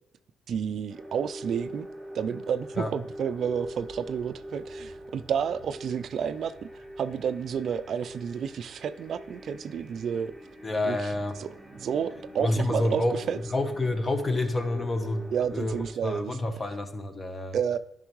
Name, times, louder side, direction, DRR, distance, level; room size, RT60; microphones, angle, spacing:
voice 1, 0.5-1.9 2.1-6.5 7.0-10.3 10.8-11.0 11.4-11.5 11.7-13.4 15.3-16.4 17.5-17.8, right 7 dB, 60° right, 12 dB, 0.4 m, -30 dB
sound 1, 0.9-15.9, equal, 5° right, 3.1 m, -44 dB
voice 2, 10.6-11.4 12.4-13.2 13.5-17.6, left 2 dB, 25° left, 8 dB, 0.9 m, -28 dB
10.0 x 5.3 x 3.1 m, 0.82 s
cardioid pair, 90°, 0 cm